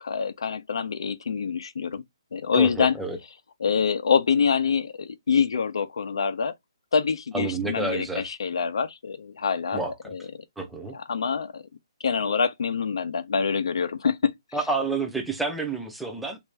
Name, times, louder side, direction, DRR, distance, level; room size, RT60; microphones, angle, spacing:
voice 1, 0.0-2.0 2.3-3.0 3.6-6.5 6.9-10.4 10.9-11.6 12.0-14.3, left 6 dB, 70° left, 0.6 m, -25 dB
voice 2, 2.5-3.2 7.3-8.3 9.7-10.1 10.6-11.0 14.5-16.4, right 3 dB, ahead, 0.4 m, -29 dB
3.4 x 2.6 x 3.2 m
hypercardioid pair, 170°, 3 cm